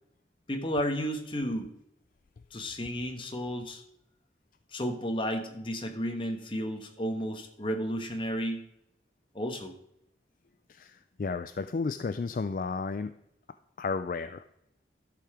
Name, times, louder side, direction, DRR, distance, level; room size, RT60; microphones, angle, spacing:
voice 1, 0.5-1.7 2.5-3.8 4.7-8.7 9.3-9.8, equal, 30° left, 4 dB, 1.2 m, -32 dB
voice 2, 10.7-13.1 13.8-14.4, left 4 dB, 50° left, 11 dB, 0.3 m, -33 dB
12.0 x 6.7 x 4.9 m, 0.80 s
head